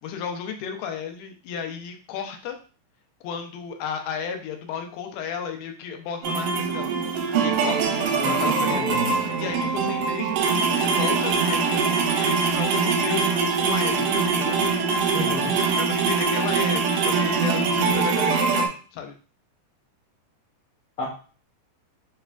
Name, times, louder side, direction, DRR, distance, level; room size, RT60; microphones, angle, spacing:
voice 1, 0.0-2.6 3.2-6.9 7.4-14.1 14.4-14.6 15.8-18.7 18.9-19.1, left 7 dB, 85° left, 5 dB, 2.5 m, -34 dB
sound 1, 6.2-18.7, right 5 dB, 80° right, 1.9 m, -23 dB
voice 2, 8.1-9.2 15.1-15.5 21.0-21.1, left 1 dB, 55° left, -5 dB, 0.6 m, -31 dB
7.1 x 2.5 x 2.3 m, 0.37 s
omnidirectional pair, 4.3 m